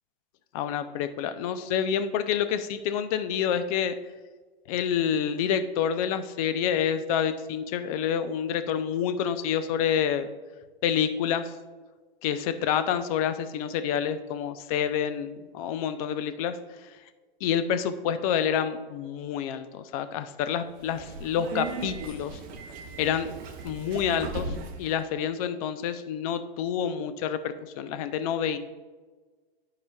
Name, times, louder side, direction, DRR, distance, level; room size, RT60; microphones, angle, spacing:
voice 1, 0.5-3.9 4.7-10.3 10.8-11.5 12.2-16.5 17.4-22.4 23.0-23.3 23.6-28.6, left 8 dB, 35° left, 11 dB, 0.5 m, -28 dB
Subway metro underground, 20.7-24.9, right 4 dB, 30° right, 0.9 m, -37 dB
11.0 x 4.9 x 2.3 m, 1.4 s
hypercardioid pair, 130°, 31 cm